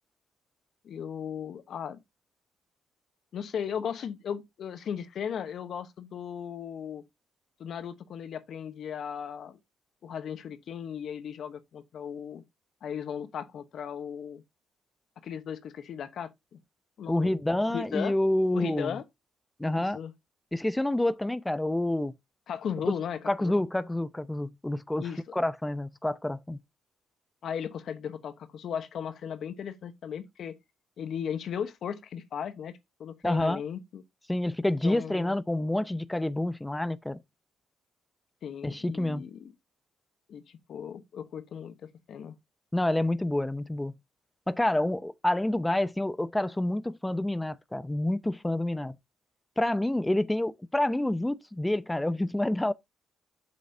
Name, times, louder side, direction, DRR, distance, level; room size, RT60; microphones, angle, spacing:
voice 1, 0.8-2.0 3.3-7.0 7.6-9.6 10.0-12.4 12.8-14.4 15.2-16.6 17.0-17.4 17.6-18.1 18.5-19.0 19.8-20.1 22.5-23.6 25.0-25.2 27.4-30.6 31.0-34.0 34.8-35.4 38.4-39.5 40.3-42.4, left 8 dB, 65° left, 1.0 m, -36 dB
voice 2, 17.1-19.0 19.6-20.0 20.5-22.1 22.8-22.9 23.3-25.1 25.3-26.6 33.2-33.6 34.3-37.2 38.6-39.2 42.7-43.9 44.5-49.0 49.6-52.7, left 1 dB, 10° left, 0.6 m, -28 dB
7.8 x 7.3 x 2.7 m
cardioid pair, 90°, 0 cm